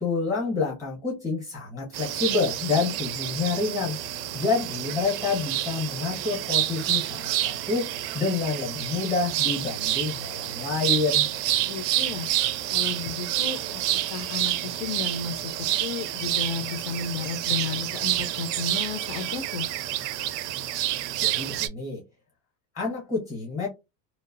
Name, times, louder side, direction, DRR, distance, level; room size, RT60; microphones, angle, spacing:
voice 1, 0.0-4.0 4.3-11.3 21.2-22.0 22.7-23.7, left 4 dB, 15° left, 0.7 m, -28 dB
sound 1, 1.9-21.7, right 13 dB, 85° right, 0.6 m, -28 dB
voice 2, 11.6-12.3 12.7-15.5 15.8-19.7, left 5 dB, 60° left, 0.5 m, -33 dB
2.9 x 2.0 x 2.5 m
supercardioid pair, 180°, 47 cm